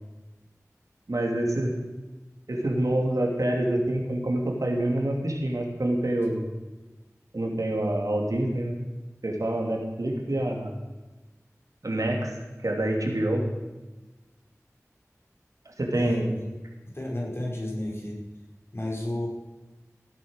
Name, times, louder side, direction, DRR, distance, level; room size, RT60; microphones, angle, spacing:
voice 1, 1.1-1.7 2.5-6.4 7.3-8.8 9.2-10.7 11.8-12.3 12.6-13.4 15.8-16.3, right 1 dB, 85° right, 1 dB, 2.9 m, -26 dB
voice 2, 15.9-16.5 16.9-18.2 18.7-19.3, left 1 dB, 45° left, -2 dB, 5.4 m, -32 dB
16.5 x 9.3 x 6.5 m, 1.2 s
wide cardioid pair, 45°, 6 cm